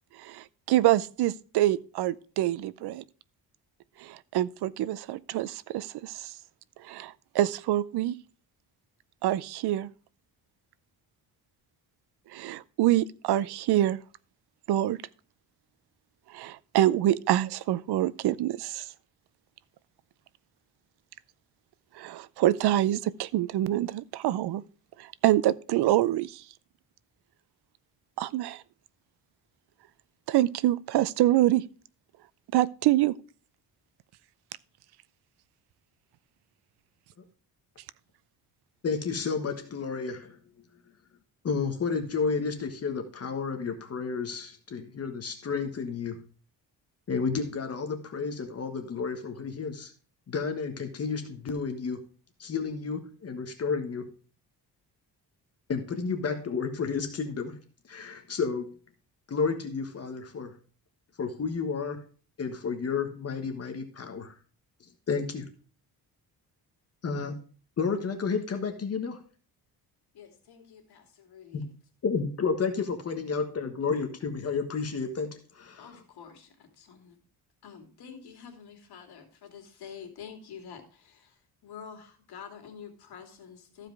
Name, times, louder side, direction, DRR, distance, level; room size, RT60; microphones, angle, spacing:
voice 1, 0.2-3.0 4.0-6.2 6.9-8.1 9.2-9.9 12.3-14.0 14.7-15.0 16.3-18.8 22.0-24.6 25.2-26.3 28.2-28.6 30.3-31.6 32.5-33.1, right 14 dB, 85° right, 0.6 m, -26 dB
voice 2, 38.8-40.4 41.4-46.2 47.1-49.9 50.3-52.0 52.4-54.0 55.7-57.5 57.9-58.7 59.3-60.5 61.2-62.0 62.4-64.3 65.1-65.5 67.0-67.3 67.8-69.2 71.5-71.6 72.0-75.3 75.5-75.8, left 5 dB, 40° left, 1.4 m, -31 dB
voice 3, 70.1-71.7 75.8-77.2 77.6-83.9, left 7 dB, 90° left, 2.7 m, -47 dB
14.5 x 5.0 x 4.7 m
cardioid pair, 145°, 38 cm